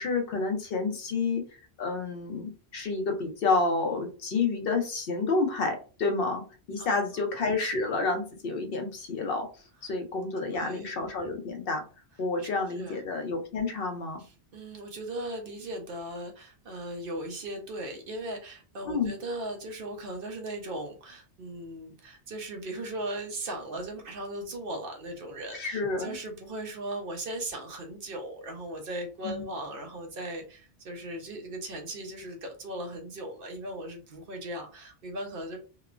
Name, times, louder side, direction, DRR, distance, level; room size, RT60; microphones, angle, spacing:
voice 1, 0.0-1.4 1.8-6.4 6.7-9.5 9.8-11.8 12.2-14.2 18.9-19.1 25.5-26.2 29.2-29.5, left 3 dB, 65° left, 4 dB, 0.8 m, -29 dB
voice 2, 10.4-10.9 12.4-12.5 12.7-13.0 14.2-35.6, right 1 dB, 60° right, 2 dB, 0.8 m, -38 dB
2.9 x 2.0 x 2.4 m, 0.36 s
omnidirectional pair, 1.1 m